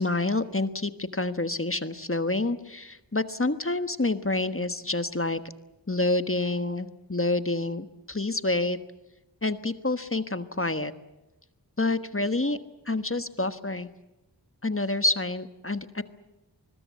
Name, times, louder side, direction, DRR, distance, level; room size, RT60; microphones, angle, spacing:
voice 1, 0.0-5.4 5.9-8.8 9.4-10.9 11.8-12.6 12.8-13.9 14.6-16.0, left 2 dB, 30° left, 11 dB, 1.3 m, -28 dB
25.5 x 21.5 x 8.3 m, 0.99 s
wide cardioid pair, 40°, 43 cm